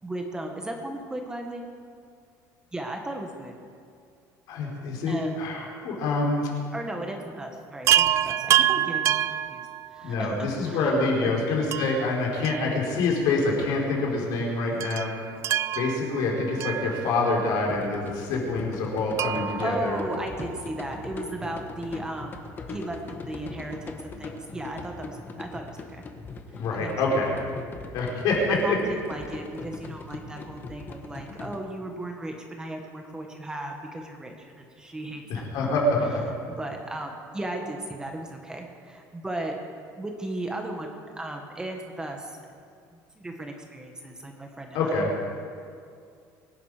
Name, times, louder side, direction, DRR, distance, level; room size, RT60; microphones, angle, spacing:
voice 1, 0.0-1.6 2.7-3.5 5.1-5.4 6.7-9.1 9.5-9.6 9.9-11.3 19.6-22.4 22.7-26.0 26.8-27.0 28.5-35.8 36.5-39.6 40.0-42.3 43.2-45.0, right 1 dB, 10° right, 2 dB, 1.3 m, -36 dB
voice 2, 4.5-6.5 10.0-15.3 15.7-20.0 26.6-27.3 27.9-28.8 35.3-36.2 44.7-45.1, left 3 dB, 65° left, -2 dB, 4.4 m, -26 dB
Chime, 7.9-10.3 11.7-13.2 13.5-13.6 14.8-17.5 19.2-20.8 22.4-22.5 22.7-22.8, right 11 dB, 40° right, 0.3 m, -27 dB
sound 1, 17.7-31.6, left 3 dB, 25° left, 1.2 m, -40 dB
23.5 x 11.0 x 5.0 m, 2.3 s
cardioid pair, 165°, 7 cm